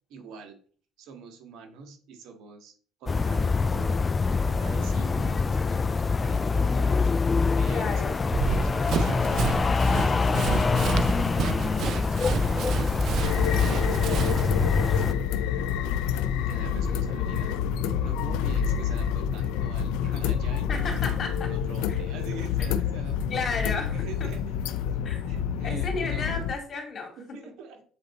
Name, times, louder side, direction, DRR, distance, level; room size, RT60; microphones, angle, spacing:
voice 1, 0.1-0.6 1.0-2.7 3.0-10.3 10.7-15.8 16.3-17.5 18.0-23.6 23.9-24.6 24.9-25.0 25.2-26.4 27.2-27.8, right 5 dB, 75° right, 4 dB, 1.7 m, -45 dB
sound 1, 3.1-15.1, left 4 dB, 25° left, 0.3 m, -25 dB
voice 2, 7.7-8.2 16.9-17.4 20.7-21.5 21.9-22.0 22.6-22.7 23.3-24.3 25.0-25.3 25.6-27.2, left 4 dB, 45° left, 3 dB, 2.3 m, -33 dB
Run, 8.3-14.5, right 7 dB, 60° right, 0.6 m, -30 dB
sound 2, 13.2-26.5, left 8 dB, 90° left, 0.5 m, -28 dB
7.7 x 4.0 x 4.3 m, 0.43 s
cardioid pair, 105°, 0 cm